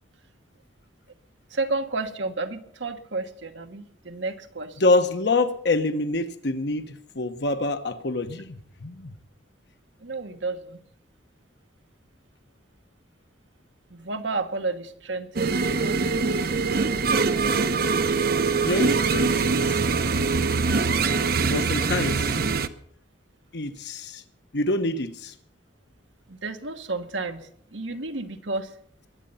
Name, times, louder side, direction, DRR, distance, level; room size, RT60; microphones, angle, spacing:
voice 1, 1.5-4.8 10.0-10.8 13.9-16.0 26.3-28.7, right 3 dB, 80° right, 7 dB, 1.4 m, -31 dB
voice 2, 4.8-9.1 18.6-19.8 21.5-22.4 23.5-24.2 24.5-25.3, left 2 dB, 65° left, 8 dB, 1.2 m, -26 dB
sound 1, 15.4-22.7, right 4 dB, 55° right, 0.8 m, -23 dB
22.0 x 9.1 x 5.7 m, 0.64 s
head